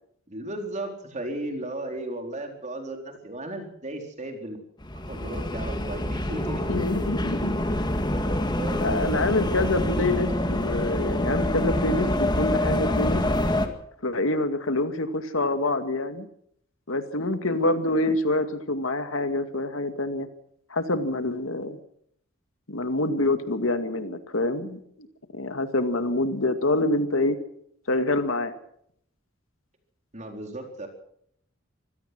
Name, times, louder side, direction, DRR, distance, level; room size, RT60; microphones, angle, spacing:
voice 1, 0.3-4.6 5.1-6.8 8.1-9.3 30.1-30.9, right 1 dB, 35° right, 4 dB, 4.2 m, -35 dB
sound 1, 4.8-13.7, left 1 dB, 20° left, 2.0 m, -26 dB
voice 2, 6.7-7.5 8.8-13.2 14.0-16.3 16.9-20.3 20.7-21.8 22.7-24.8 25.3-27.4 27.9-28.5, left 2 dB, 85° left, 9 dB, 2.2 m, -26 dB
25.0 x 17.0 x 6.2 m, 0.69 s
head